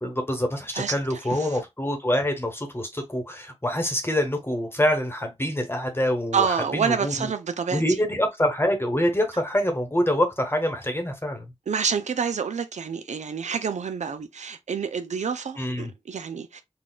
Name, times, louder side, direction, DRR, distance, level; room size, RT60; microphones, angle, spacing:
voice 1, 0.0-7.3 7.7-11.4 15.6-15.9, equal, 20° left, 1.0 m, -25 dB
voice 2, 6.3-7.8 11.7-16.6, right 6 dB, 90° right, 0.4 m, -28 dB
4.0 x 2.3 x 2.3 m
wide cardioid pair, 50°, 12 cm